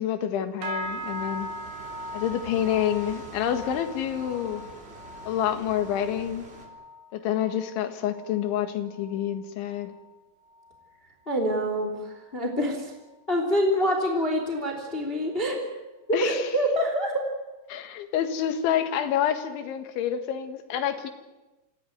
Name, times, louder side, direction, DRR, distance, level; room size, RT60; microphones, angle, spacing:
voice 1, 0.0-1.5 2.1-4.6 5.3-6.5 7.1-9.9 16.1-16.5 17.7-21.1, left 10 dB, 85° left, 8 dB, 4.1 m, -28 dB
sound 1, 0.6-10.2 10.5-10.9 11.3-11.6 12.2-12.3, equal, 70° right, 5.3 m, -40 dB
sound 2, 0.8-6.7, right 1 dB, 15° right, 3.6 m, -46 dB
voice 2, 11.3-12.9 13.3-15.7 16.1-17.2, equal, 15° left, 4 dB, 2.7 m, -26 dB
27.5 x 17.0 x 9.4 m, 1.1 s
omnidirectional pair, 5.2 m